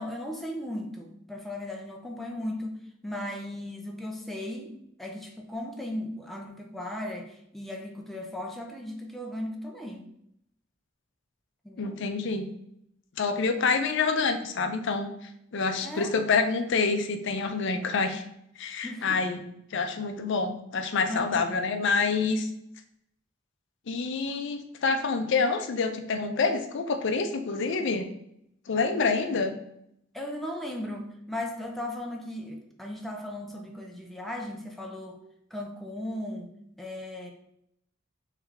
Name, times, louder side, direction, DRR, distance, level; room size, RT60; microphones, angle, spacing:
voice 1, 0.0-2.8 3.0-10.1 11.6-12.0 15.8-16.3 18.8-19.3 21.1-21.4 30.1-35.2 35.5-36.5 36.8-37.3, left 1 dB, ahead, 0 dB, 0.4 m, -37 dB
voice 2, 11.8-12.4 13.2-15.1 15.5-18.2 18.6-19.4 19.7-22.5 23.9-28.1 28.7-29.6, left 4 dB, 60° left, 6 dB, 0.5 m, -27 dB
3.6 x 3.1 x 3.4 m, 0.75 s
head